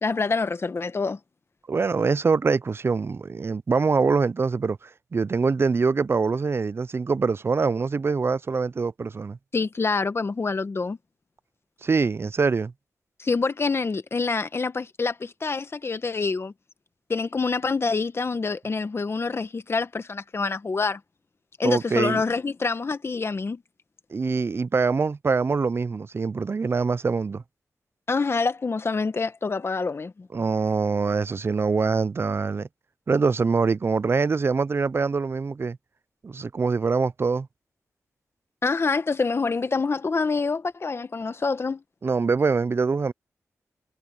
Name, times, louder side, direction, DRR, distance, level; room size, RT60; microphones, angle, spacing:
voice 1, 0.0-1.2 9.5-11.0 13.2-16.5 17.1-21.0 21.6-23.6 28.1-30.3 38.6-41.8, left 4 dB, 50° left, 1.2 m, -26 dB
voice 2, 1.7-9.4 11.8-12.7 21.6-22.2 24.1-27.4 30.3-32.7 33.1-35.8 36.2-37.5 42.0-43.1, right 4 dB, 45° right, 0.4 m, -24 dB
cardioid pair, 60°, 6 cm